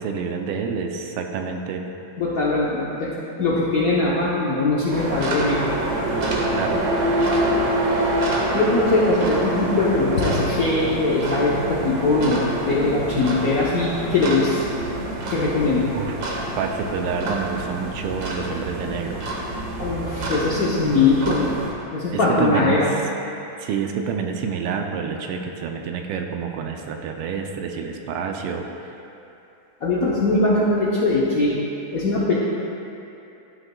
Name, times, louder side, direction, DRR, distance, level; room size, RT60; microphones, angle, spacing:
voice 1, 0.0-1.9 6.3-6.8 15.9-16.2 16.6-19.2 22.1-22.9 23.6-28.9, right 6 dB, 85° right, 4 dB, 1.5 m, -28 dB
voice 2, 2.2-3.1 3.4-5.8 8.5-14.7 15.3-15.9 19.8-21.6 21.9-22.9 29.8-31.6 31.9-32.3, left 3 dB, 65° left, -6 dB, 0.9 m, -21 dB
sound 1, 4.9-21.7, right 1 dB, 55° right, 1.4 m, -26 dB
13.0 x 6.1 x 2.2 m, 2.8 s
omnidirectional pair, 2.4 m